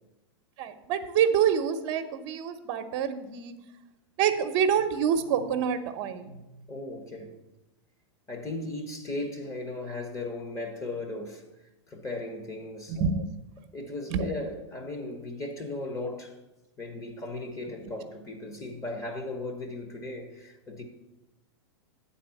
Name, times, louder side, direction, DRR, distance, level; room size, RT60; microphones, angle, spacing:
voice 1, 0.6-3.5 4.2-6.4 12.9-13.2 14.1-14.3, right 8 dB, 50° right, 0.9 m, -26 dB
voice 2, 6.7-7.4 8.3-11.4 11.9-13.0 13.7-16.3 16.8-20.8, left 2 dB, 20° left, 1.3 m, -36 dB
8.8 x 4.2 x 7.1 m
hypercardioid pair, 130°, 15 cm